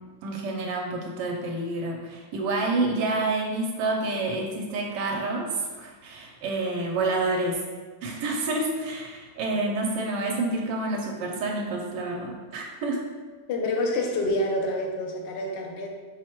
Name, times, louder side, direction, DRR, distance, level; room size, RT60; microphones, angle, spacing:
voice 1, 0.2-7.6 8.0-13.0, right 2 dB, 85° right, 0 dB, 1.2 m, -28 dB
voice 2, 13.5-15.9, left 1 dB, 70° left, 1 dB, 0.6 m, -27 dB
4.4 x 2.1 x 4.4 m, 1.4 s
omnidirectional pair, 1.8 m